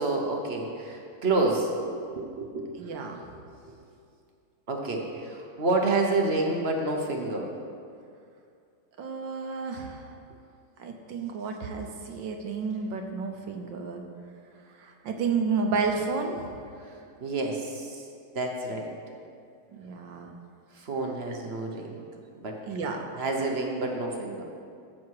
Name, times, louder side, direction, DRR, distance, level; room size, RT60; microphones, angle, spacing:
voice 1, 0.0-1.7 2.2-2.9 4.7-7.5 16.8-18.0 18.3-18.9 20.7-21.9 22.4-22.6 23.1-24.4, right 2 dB, 45° right, 1 dB, 0.8 m, -29 dB
voice 2, 2.8-3.2 9.0-10.0 10.8-14.0 14.8-16.5 19.7-20.3 22.7-23.0, right 5 dB, 65° right, 4 dB, 1.4 m, -31 dB
13.0 x 7.6 x 4.7 m, 2.4 s
omnidirectional pair, 2.4 m